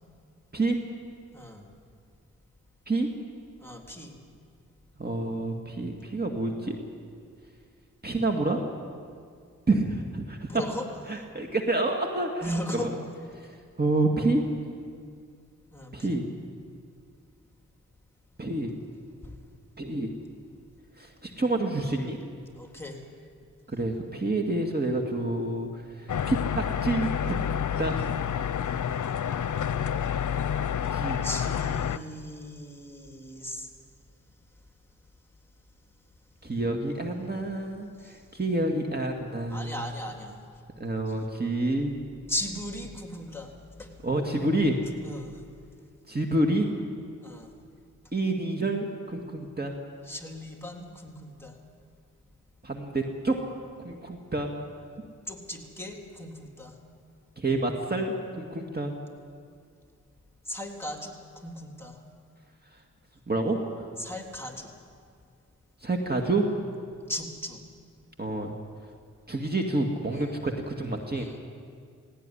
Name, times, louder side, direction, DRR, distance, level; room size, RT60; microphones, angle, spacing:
voice 1, 1.3-1.6 3.6-4.2 10.5-11.2 12.4-12.9 15.7-16.2 19.2-19.3 22.6-23.0 31.2-33.7 38.0-38.2 39.5-40.3 41.1-41.2 42.3-43.5 43.8-43.9 45.0-45.4 47.2-47.5 50.0-51.6 55.3-56.7 60.4-62.0 64.0-64.7 67.1-67.6 70.1-70.3 71.1-71.5, left 1 dB, 5° left, 2 dB, 3.4 m, -37 dB
voice 2, 5.0-6.8 8.0-8.6 9.7-10.6 11.1-12.4 12.7-12.9 13.8-14.4 15.9-16.3 18.4-18.7 19.8-20.1 21.0-22.2 23.7-28.0 30.9-31.2 36.4-39.8 40.8-41.9 44.0-44.8 46.1-46.7 48.1-49.7 52.6-53.4 53.8-54.5 57.4-58.9 63.3-63.9 65.8-66.5 68.2-68.5 69.3-71.3, right 2 dB, 30° right, 2 dB, 2.1 m, -28 dB
sound 1, 26.1-32.0, left 8 dB, 70° left, 0.7 m, -29 dB
18.0 x 17.0 x 10.0 m, 2.2 s
cardioid pair, 55°, 31 cm